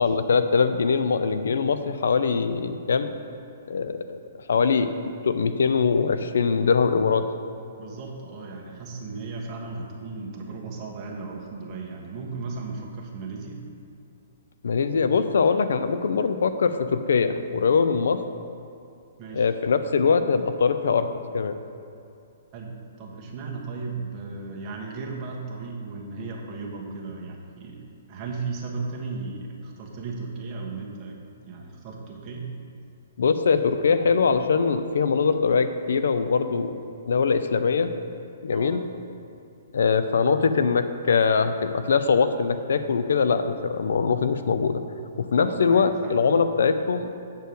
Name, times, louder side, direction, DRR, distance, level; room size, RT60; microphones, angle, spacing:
voice 1, 0.0-3.2 3.7-4.2 4.5-4.9 5.2-7.2 14.6-18.2 19.3-21.5 33.2-36.8 37.1-37.9 38.4-38.8 39.7-44.8 45.2-47.1, left 5 dB, 80° left, 10 dB, 0.5 m, -22 dB
voice 2, 7.8-13.6 19.2-19.5 22.5-22.7 23.0-27.8 28.1-31.2 31.5-32.5 38.5-38.8 45.4-46.2, right 4 dB, 25° right, -2 dB, 1.2 m, -35 dB
7.8 x 4.5 x 6.9 m, 2.6 s
hypercardioid pair, 165°, 0 cm